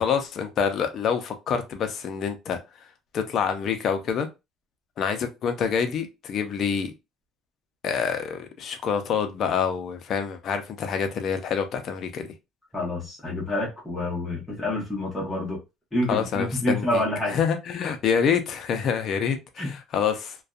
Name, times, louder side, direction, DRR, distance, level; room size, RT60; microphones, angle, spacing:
voice 1, 0.0-2.6 3.1-4.3 5.0-6.9 7.8-12.3 16.1-17.0 17.3-20.4, left 7 dB, 50° left, 0.5 m, -26 dB
voice 2, 12.7-15.6 15.9-17.4 19.6-19.7, left 1 dB, 5° left, 1.0 m, -28 dB
2.5 x 2.3 x 2.2 m
cardioid pair, 135°, 0 cm